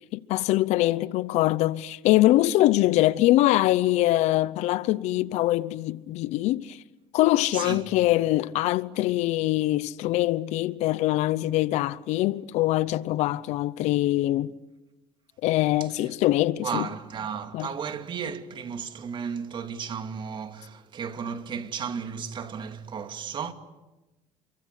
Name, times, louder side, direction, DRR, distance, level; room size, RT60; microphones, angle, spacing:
voice 1, 0.0-6.8 7.1-14.5 15.4-16.9 17.5-17.7, left 16 dB, 70° left, 0.9 m, -23 dB
voice 2, 7.5-7.8 15.8-16.1 16.6-23.5, right 6 dB, 40° right, 2.5 m, -34 dB
29.5 x 23.5 x 8.3 m
cardioid pair, 105°, 12 cm